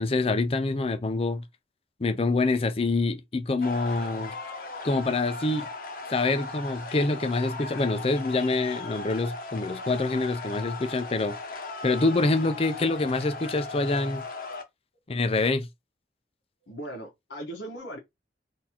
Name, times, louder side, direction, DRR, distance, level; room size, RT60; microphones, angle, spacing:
voice 1, 0.0-1.4 2.0-4.3 4.8-5.7 6.1-11.4 11.8-14.2 15.1-15.7, left 3 dB, 35° left, 0.5 m, -26 dB
sound 1, 3.6-14.6, left 3 dB, 55° left, 0.8 m, -38 dB
voice 2, 16.7-18.0, right 1 dB, 90° left, 1.1 m, -38 dB
4.1 x 2.6 x 2.9 m
head